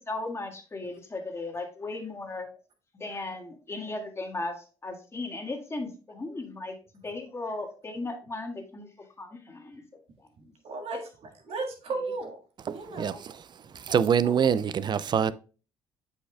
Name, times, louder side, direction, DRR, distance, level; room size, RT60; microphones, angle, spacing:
voice 1, 0.0-2.5 2.9-6.8 7.0-8.9 9.2-9.8 10.2-10.5, left 2 dB, 25° left, 1.6 m, -36 dB
voice 2, 10.6-12.4 12.7-13.2 13.9-14.5, right 3 dB, 60° right, 1.7 m, -36 dB
voice 3, 12.7-15.3, right 7 dB, 40° right, 0.4 m, -26 dB
8.2 x 5.4 x 2.3 m
supercardioid pair, 80°, 11 cm